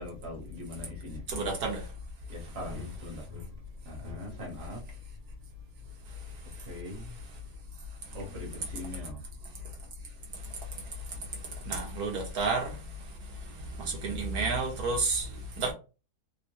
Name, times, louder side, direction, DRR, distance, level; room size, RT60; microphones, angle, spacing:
voice 1, 0.0-1.2 2.3-3.5 3.8-4.8 6.6-7.1 8.1-9.2, left 2 dB, 40° right, 1.3 m, -40 dB
voice 2, 1.3-1.8 11.6-12.8 13.8-15.7, right 3 dB, 70° right, 1.6 m, -30 dB
3.5 x 2.3 x 2.8 m
omnidirectional pair, 1.7 m